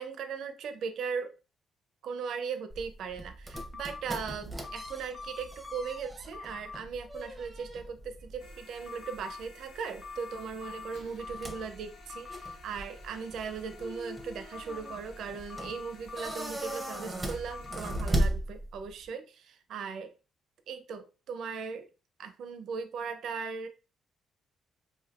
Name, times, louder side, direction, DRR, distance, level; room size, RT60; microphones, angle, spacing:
voice 1, 0.0-1.3 2.0-20.1 20.7-21.9 22.2-23.7, right 6 dB, 70° right, 0.5 m, -38 dB
sound 1, 2.7-19.1, right 1 dB, 15° right, 0.7 m, -38 dB
sound 2, 3.5-4.0 4.6-6.0 6.3-6.8 8.9-9.4 10.0-11.6 12.1-12.5 14.5-15.0 15.5-17.0 17.5-18.0, left 4 dB, 25° left, 0.5 m, -44 dB
sound 3, 8.4-18.2, left 4 dB, 70° left, 1.1 m, -54 dB
3.4 x 2.6 x 2.4 m
cardioid pair, 90°, 0 cm